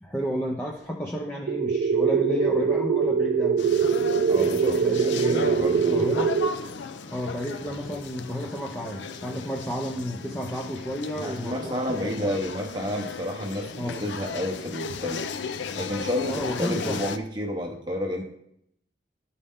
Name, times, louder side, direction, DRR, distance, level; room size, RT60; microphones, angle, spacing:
voice 1, 0.0-3.6 4.4-6.3 7.1-12.3 13.8-14.0 16.3-17.0, equal, 10° left, -1 dB, 0.5 m, -32 dB
sound 1, 1.5-6.5, right 6 dB, 80° right, 0.4 m, -23 dB
sound 2, 3.6-17.2, left 5 dB, 80° left, 0.5 m, -36 dB
voice 2, 4.3-6.2 11.1-15.3 15.7-18.2, equal, 25° right, 1 dB, 0.8 m, -30 dB
12.0 x 4.2 x 3.6 m, 0.74 s
head